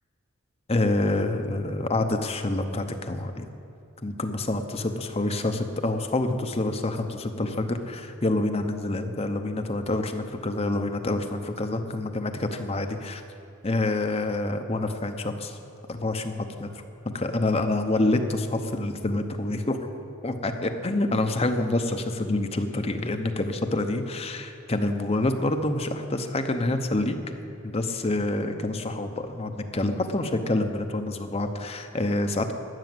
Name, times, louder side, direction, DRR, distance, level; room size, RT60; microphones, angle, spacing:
voice 1, 0.7-3.5 4.0-13.2 13.6-15.6 15.9-19.9 20.2-27.3 27.6-32.5, left 2 dB, 30° left, 6 dB, 0.8 m, -27 dB
12.5 x 8.3 x 7.7 m, 2.8 s
head